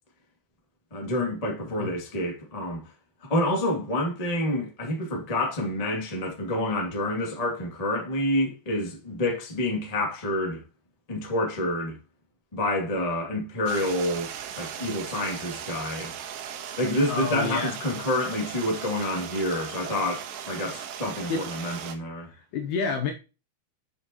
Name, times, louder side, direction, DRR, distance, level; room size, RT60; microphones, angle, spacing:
voice 1, 0.9-2.8 3.2-10.6 11.1-12.0 12.5-14.3 14.6-16.1 16.8-22.3, left 1 dB, 20° left, 1.0 m, -28 dB
Stream, 13.7-22.0, right 9 dB, 75° right, 3.2 m, -38 dB
voice 2, 17.1-17.7 21.3-21.5 22.4-23.1, left 4 dB, 75° left, 2.5 m, -29 dB
8.7 x 6.6 x 3.0 m
omnidirectional pair, 5.3 m